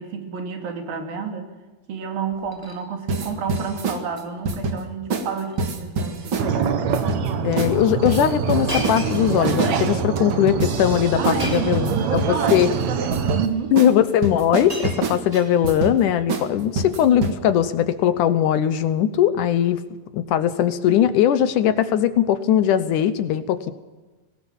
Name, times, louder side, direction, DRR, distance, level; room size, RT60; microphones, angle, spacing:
voice 1, 0.0-1.5 1.9-6.5 11.2-13.8, right 6 dB, 80° right, 4 dB, 4.5 m, -30 dB
Shatter, 2.3-2.8 3.1-3.6 3.9-4.2 4.5-4.6 5.4-5.7 6.0-6.3 7.0-7.1 8.7-9.8 11.4-11.9 12.9-13.0 14.0-14.1 14.4-15.9 16.8-17.1, equal, 10° right, 3.7 m, -35 dB
sound 1, 3.1-4.0 4.5-4.8 5.1-5.3 5.6-6.5 6.9-7.3 7.6-7.8 8.1-12.7 13.1-13.4 13.8-13.9 14.2-15.2 15.6-16.0 16.3-16.5 16.8-17.3, right 3 dB, 45° right, 2.0 m, -26 dB
sound 2, 6.4-13.5, right 6 dB, 60° right, 2.3 m, -25 dB
voice 2, 7.4-12.7 13.7-19.8 20.1-23.7, left 10 dB, 70° left, 12 dB, 2.2 m, -20 dB
22.0 x 19.0 x 7.3 m, 1.2 s
omnidirectional pair, 4.1 m